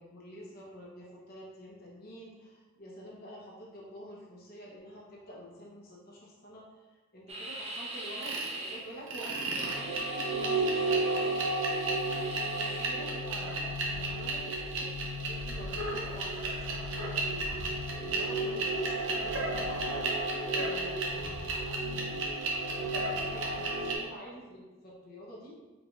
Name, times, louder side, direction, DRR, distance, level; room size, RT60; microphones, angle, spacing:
voice 1, 0.0-11.5 12.4-14.9 15.3-20.2 20.6-25.6, equal, 45° left, -5 dB, 0.8 m, -48 dB
sound 1, 7.3-8.8 9.2-12.9, right 1 dB, 30° right, 0.6 m, -42 dB
sound 2, 8.2-8.5 9.1-24.0, right 2 dB, 65° right, 0.8 m, -32 dB
4.7 x 3.8 x 2.5 m, 1.3 s
head